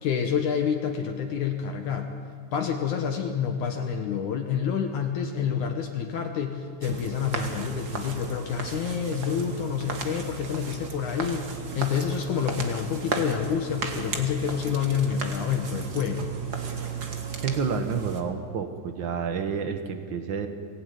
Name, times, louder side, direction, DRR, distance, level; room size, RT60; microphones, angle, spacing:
voice 1, 0.0-2.1 2.5-16.3, left 7 dB, 65° left, 4 dB, 2.5 m, -28 dB
sound 1, 6.8-18.2, right 4 dB, 40° right, 1.5 m, -35 dB
voice 2, 17.4-20.5, right 6 dB, 75° right, 7 dB, 1.0 m, -29 dB
23.0 x 16.0 x 9.3 m, 2.2 s
omnidirectional pair, 4.0 m